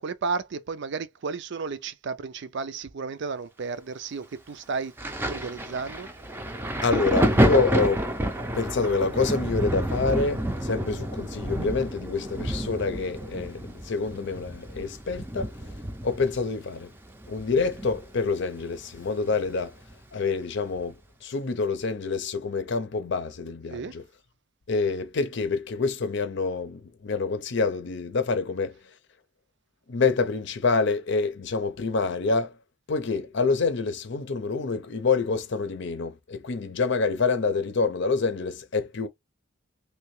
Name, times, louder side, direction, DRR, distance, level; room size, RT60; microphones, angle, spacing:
voice 1, 0.0-4.9 5.3-6.1 23.7-23.9, right 4 dB, 65° right, 0.5 m, -33 dB
Thunder, 5.0-18.3 18.6-19.9 20.8-20.9, right 1 dB, 10° right, 0.5 m, -29 dB
voice 2, 6.8-8.1 8.5-15.5 16.0-16.9 17.3-19.7 20.1-24.0 24.7-28.8 29.9-32.5 32.9-39.1, left 4 dB, 65° left, 0.6 m, -27 dB
3.2 x 2.8 x 3.1 m
head